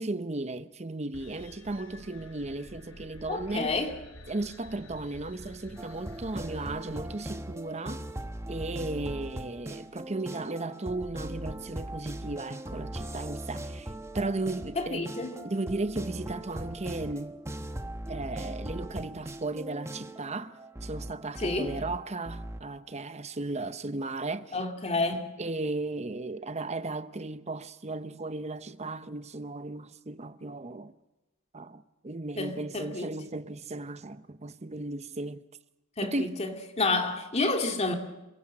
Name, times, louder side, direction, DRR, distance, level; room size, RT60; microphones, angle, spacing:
voice 1, 0.0-3.8 4.3-8.0 8.5-15.1 15.4-17.4 18.1-24.6 25.4-30.9 31.5-35.4 36.0-36.4, right 2 dB, 30° right, 0.8 m, -35 dB
sound 1, 1.1-7.7, left 1 dB, 80° left, 4.9 m, -50 dB
voice 2, 3.3-3.9 14.8-15.3 21.4-21.8 24.5-25.3 32.4-33.1 36.0-37.9, left 3 dB, 30° left, 2.3 m, -29 dB
sound 2, 5.8-22.6, right 1 dB, 15° right, 1.0 m, -39 dB
27.0 x 16.5 x 7.6 m
head